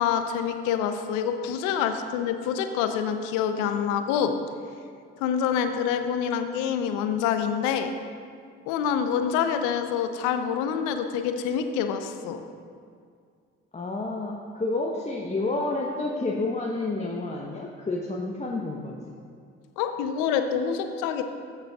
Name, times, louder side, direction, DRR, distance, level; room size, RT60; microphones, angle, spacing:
voice 1, 0.0-4.4 5.2-7.9 8.7-12.4 19.8-21.2, left 8 dB, 70° left, 8 dB, 0.7 m, -26 dB
voice 2, 13.7-19.0, left 2 dB, 20° left, -2 dB, 1.0 m, -29 dB
14.0 x 6.7 x 2.4 m, 2.2 s
hypercardioid pair, 50°, 32 cm